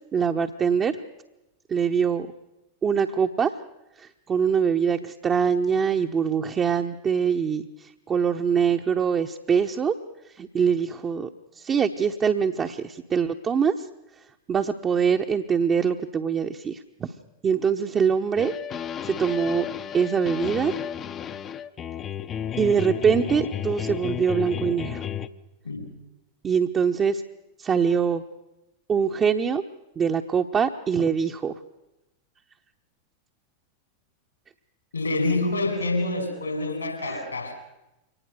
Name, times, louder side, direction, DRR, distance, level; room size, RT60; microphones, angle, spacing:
voice 1, 0.1-1.0 1.7-2.3 2.8-3.5 4.0-10.0 10.3-11.3 11.6-13.9 14.5-17.1 17.4-18.5 19.0-19.7 19.9-20.7 22.6-25.0 26.4-27.2 27.6-28.2 28.9-29.6 30.0-31.5 37.1-37.2, right 6 dB, 25° right, 3 dB, 1.0 m, -23 dB
sound 1, 18.4-25.3, left 9 dB, 25° left, 0.9 m, -32 dB
voice 2, 34.9-37.5, left 2 dB, 80° left, 4 dB, 6.2 m, -27 dB
24.5 x 19.0 x 6.8 m, 0.93 s
figure-of-eight pair, 90°, 0 cm